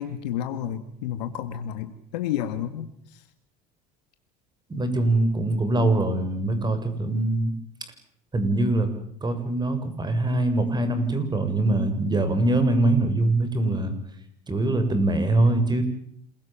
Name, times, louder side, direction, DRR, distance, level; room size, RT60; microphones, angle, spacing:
voice 1, 0.0-3.2, left 10 dB, 90° left, 9 dB, 2.4 m, -31 dB
voice 2, 4.7-7.5 8.3-8.9 9.2-13.9 14.5-15.8, right 2 dB, 20° right, 9 dB, 6.9 m, -23 dB
28.0 x 22.5 x 7.5 m, 0.69 s
supercardioid pair, 100°, 21 cm